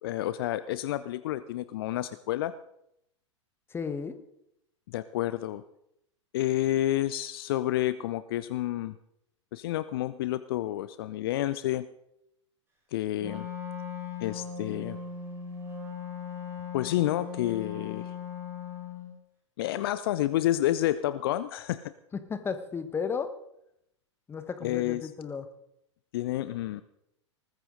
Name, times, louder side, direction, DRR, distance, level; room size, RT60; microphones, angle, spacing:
voice 1, 0.0-2.5 4.9-5.6 6.3-9.0 9.5-11.9 12.9-13.5 14.2-15.0 16.7-18.1 19.6-21.9 24.6-25.1 26.1-26.8, left 14 dB, 50° left, 15 dB, 0.6 m, -29 dB
voice 2, 3.7-4.2 22.1-23.3 24.3-25.5, left 6 dB, 15° left, 11 dB, 1.4 m, -34 dB
Wind instrument woodwind instrument, 13.2-19.1, left 6 dB, 15° right, 7.5 m, -38 dB
20.0 x 14.5 x 3.9 m, 0.78 s
figure-of-eight pair, 100°, 16 cm